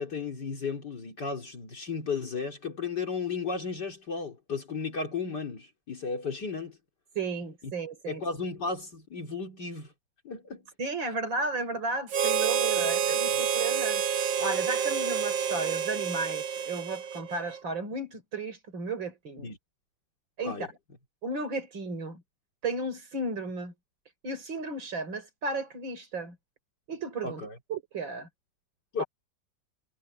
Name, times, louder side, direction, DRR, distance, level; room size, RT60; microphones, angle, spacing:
voice 1, 0.0-6.8 8.1-9.9 10.3-10.6 12.8-12.9 13.3-13.4 19.4-19.6 20.4-20.7 27.2-27.6 28.9-29.0, left 4 dB, 60° left, 3.5 m, -34 dB
voice 2, 7.2-8.2 10.8-19.5 20.4-20.7 21.2-22.2 22.6-23.7 24.2-26.4 26.9-27.4 27.7-28.3 29.0-29.1, right 3 dB, 85° right, 5.2 m, -34 dB
Harmonica, 12.1-17.6, right 7 dB, 55° right, 1.2 m, -28 dB
omnidirectional pair, 2.0 m